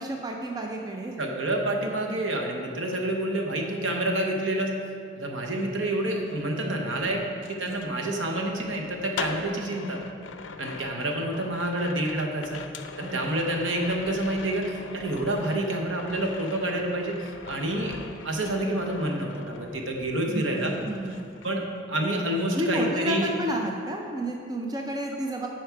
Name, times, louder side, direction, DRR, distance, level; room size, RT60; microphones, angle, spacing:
voice 1, 0.0-1.2 13.0-13.5 20.3-21.2 22.5-25.5, right 1 dB, 20° right, 1 dB, 0.5 m, -31 dB
voice 2, 1.2-4.7 5.2-10.0 10.6-12.6 13.0-18.0 18.2-20.7 21.4-21.6 21.9-23.3, right 1 dB, 75° right, 1 dB, 0.9 m, -28 dB
sound 1, 6.1-20.3 20.6-22.1 22.3-22.7, left 5 dB, 75° left, 0.4 m, -41 dB
8.1 x 4.7 x 4.6 m, 2.3 s
head